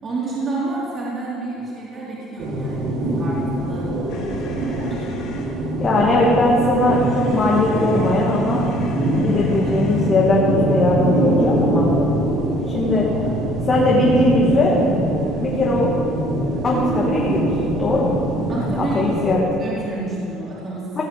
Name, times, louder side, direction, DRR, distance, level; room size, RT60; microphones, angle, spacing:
voice 1, 0.0-3.9 4.6-5.1 18.5-19.0 19.6-21.0, right 3 dB, 30° right, -7 dB, 4.1 m, -29 dB
sound 1, 2.4-19.4, right 1 dB, 60° right, 3.7 m, -23 dB
sound 2, 4.1-5.6 6.7-10.2 11.2-14.2, left 4 dB, 60° left, 2.4 m, -39 dB
voice 2, 5.8-8.6 9.1-11.9 12.7-13.1 13.6-14.8 15.4-15.9 16.6-17.5 17.8-18.2 18.9-19.5 21.0-21.1, left 2 dB, 25° left, -4 dB, 2.5 m, -19 dB
17.5 x 9.2 x 8.7 m, 2.9 s
cardioid pair, 145°, 0 cm